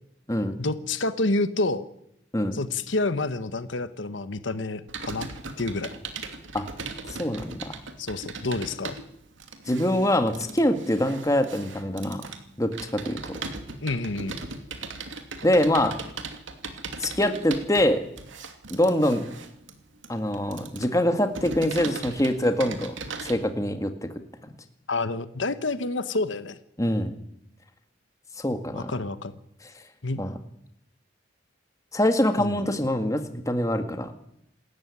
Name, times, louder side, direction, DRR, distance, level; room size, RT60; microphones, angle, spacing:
voice 1, 0.6-1.8 2.5-5.3 5.6-5.9 8.0-9.0 13.8-14.4 24.9-26.6 28.7-29.4 30.0-30.2 32.4-32.6, left 2 dB, 75° left, 12 dB, 1.3 m, -28 dB
Computer keyboard, 4.9-23.3, right 4 dB, 85° right, 2.7 m, -38 dB
voice 2, 7.2-7.8 9.7-12.2 12.6-13.4 15.4-16.0 17.0-18.0 18.7-19.3 20.1-23.0 23.2-24.1 26.8-27.2 28.4-28.9 30.2-30.3 31.9-34.1, left 1 dB, 15° left, 7 dB, 1.8 m, -24 dB
27.5 x 13.5 x 9.8 m, 0.77 s
head